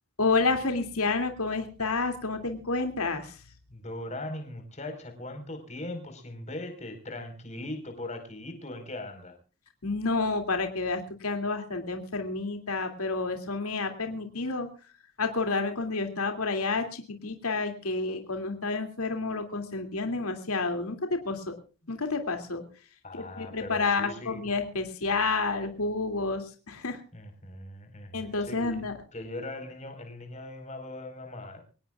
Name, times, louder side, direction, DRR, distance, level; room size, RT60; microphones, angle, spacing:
voice 1, 0.2-3.4 9.8-14.7 15.2-21.5 21.9-22.6 23.1-27.0 28.1-28.9, left 3 dB, 80° left, 5 dB, 2.6 m, -29 dB
voice 2, 3.7-9.4 23.0-24.4 27.1-31.6, left 1 dB, 30° left, 6 dB, 4.5 m, -40 dB
24.5 x 18.5 x 2.4 m, 0.36 s
head